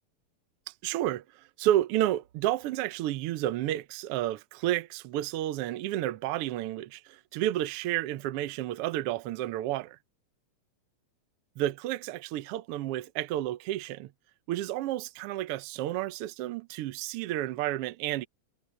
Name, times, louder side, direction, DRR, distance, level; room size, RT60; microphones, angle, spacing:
voice 1, 0.7-10.0 11.6-14.1 14.5-18.3, right 13 dB, 70° right, 1.4 m, -31 dB
omnidirectional pair, 3.3 m